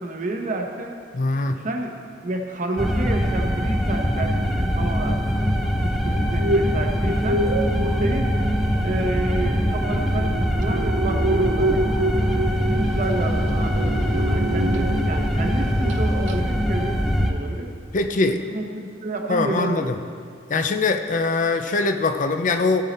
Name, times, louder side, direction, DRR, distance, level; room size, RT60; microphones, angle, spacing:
voice 1, 0.0-1.0 1.5-5.2 5.8-7.5 7.8-8.3 8.8-12.0 12.7-17.0 17.3-17.7 18.2-19.9, right 2 dB, 45° right, 3 dB, 1.0 m, -29 dB
voice 2, 1.1-1.6 17.9-18.4 19.3-20.0 20.5-22.9, left 3 dB, 45° left, 7 dB, 0.5 m, -22 dB
sound 1, 2.8-17.3, equal, ahead, 0.7 m, -23 dB
sound 2, 6.1-15.4 15.7-16.0 16.3-16.4, right 1 dB, 80° right, 0.5 m, -28 dB
16.0 x 5.6 x 4.2 m, 2.1 s
head